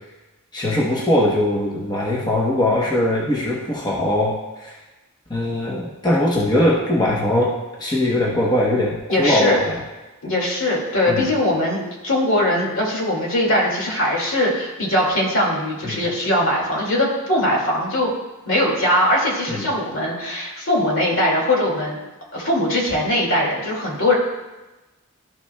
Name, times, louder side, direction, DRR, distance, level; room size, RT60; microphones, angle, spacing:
voice 1, 0.5-4.8 5.3-9.8 11.1-11.2 15.8-16.0 19.5-19.6, left 1 dB, 20° left, -3 dB, 0.9 m, -21 dB
voice 2, 9.1-9.6 10.2-18.1 18.5-22.0 22.3-24.1, left 1 dB, 65° left, -2 dB, 2.2 m, -21 dB
12.5 x 6.0 x 2.2 m, 1.1 s
head